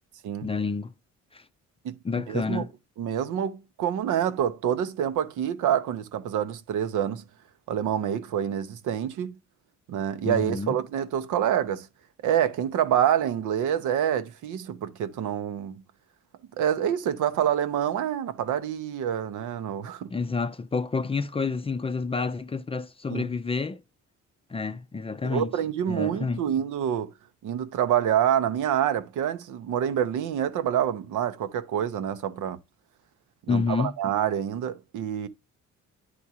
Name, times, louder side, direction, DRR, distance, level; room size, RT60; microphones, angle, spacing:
voice 1, 0.4-0.9 1.3-1.4 2.0-2.7 10.2-10.8 20.1-23.8 24.5-25.5 25.9-26.4 33.5-33.9, left 4 dB, 20° left, 0.4 m, -29 dB
voice 2, 2.3-2.7 3.0-7.2 7.7-9.4 9.9-11.9 12.2-15.8 16.6-20.1 23.1-23.2 25.2-27.1 27.4-32.6 33.5-35.3, right 9 dB, 80° right, 0.8 m, -27 dB
9.5 x 3.5 x 2.8 m
cardioid pair, 90°, 30 cm